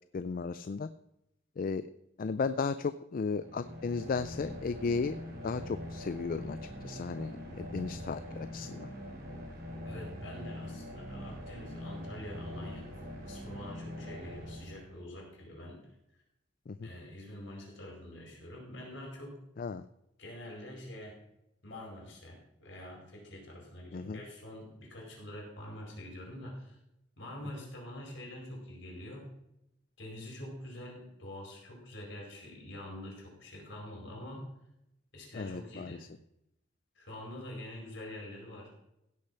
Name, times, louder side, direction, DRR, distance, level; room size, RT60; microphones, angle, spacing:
voice 1, 0.1-0.9 1.6-1.9 2.2-5.2 5.4-6.6 6.8-8.9 16.7-16.9 19.6-19.8 23.9-24.2 35.3-36.0, left 4 dB, 45° left, 13 dB, 0.4 m, -35 dB
sound 1, 3.3-15.2, left 1 dB, 50° right, 3.2 m, -43 dB
voice 2, 9.8-12.9 13.3-15.8 16.1-16.2 16.8-19.4 20.2-21.2 21.6-26.8 27.2-29.3 30.0-34.5 35.1-36.0 36.9-38.7, left 1 dB, 70° left, -1 dB, 4.9 m, -45 dB
16.0 x 6.5 x 5.7 m, 0.84 s
head